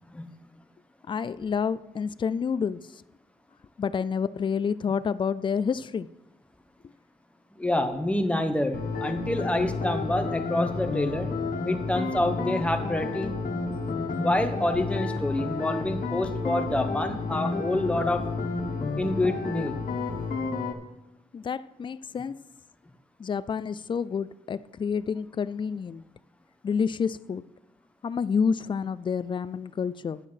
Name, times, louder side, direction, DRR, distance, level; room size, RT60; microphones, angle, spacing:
voice 1, 1.0-3.0 3.8-6.1 6.8-6.9 13.7-14.5 19.6-19.7 21.3-22.4 23.2-26.0 26.6-27.4 28.0-30.2, left 6 dB, 35° left, 0.3 m, -29 dB
voice 2, 7.6-11.3 11.6-13.3 14.2-18.4 19.0-19.8, left 1 dB, 10° left, 1.0 m, -27 dB
sound 1, 8.7-20.7, left 3 dB, 75° left, 1.5 m, -31 dB
10.5 x 9.1 x 5.7 m
wide cardioid pair, 165°, 15 cm